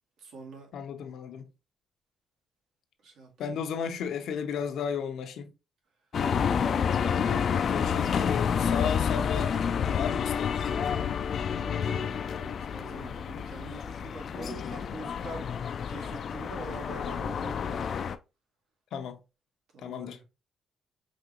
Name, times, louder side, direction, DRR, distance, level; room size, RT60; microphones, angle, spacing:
voice 1, 0.2-0.7 3.0-3.6 6.6-7.9 11.3-15.5 15.9-17.8 19.7-20.2, right 3 dB, 80° right, 1.8 m, -45 dB
voice 2, 0.7-1.4 3.4-5.5 7.7-9.5 9.9-10.6 18.9-19.2 19.8-20.2, left 7 dB, 75° left, 0.7 m, -34 dB
sound 1, 6.1-18.2, left 7 dB, 45° left, 0.4 m, -29 dB
5.0 x 3.3 x 2.9 m
cardioid pair, 160°, 0 cm